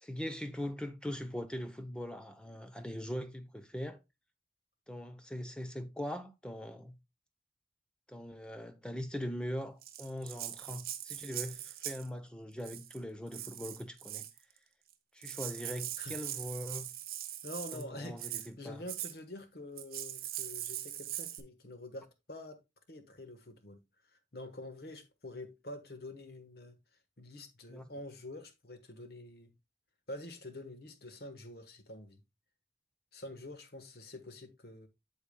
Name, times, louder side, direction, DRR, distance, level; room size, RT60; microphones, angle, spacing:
voice 1, 0.0-4.0 4.9-6.9 8.1-14.3 15.1-16.9 17.7-18.8 27.7-27.9, equal, 5° left, 0.7 m, -41 dB
Rattle (instrument), 9.8-12.1 12.6-13.0 13.3-14.4 14.9-15.0 15.2-17.8 18.2-18.5 18.9-19.1 19.8-21.4, right 12 dB, 55° right, 0.7 m, -41 dB
voice 2, 17.4-22.6 22.9-23.8 24.3-26.7 27.2-29.5 30.1-32.2 33.1-34.9, left 1 dB, 65° left, 1.3 m, -47 dB
8.5 x 7.1 x 2.2 m
head